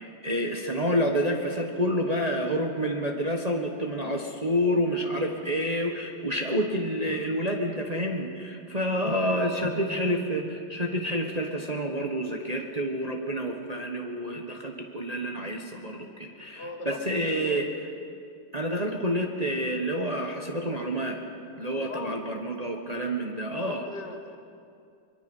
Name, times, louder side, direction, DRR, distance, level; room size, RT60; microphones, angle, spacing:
voice 1, 0.0-17.7 18.5-21.2 21.6-23.9, equal, 25° right, 1 dB, 1.2 m, -28 dB
voice 2, 9.1-9.7 16.5-17.7 21.7-22.2 23.6-24.4, left 3 dB, 65° left, 4 dB, 2.1 m, -40 dB
23.0 x 22.5 x 5.5 m, 2.4 s
omnidirectional pair, 2.0 m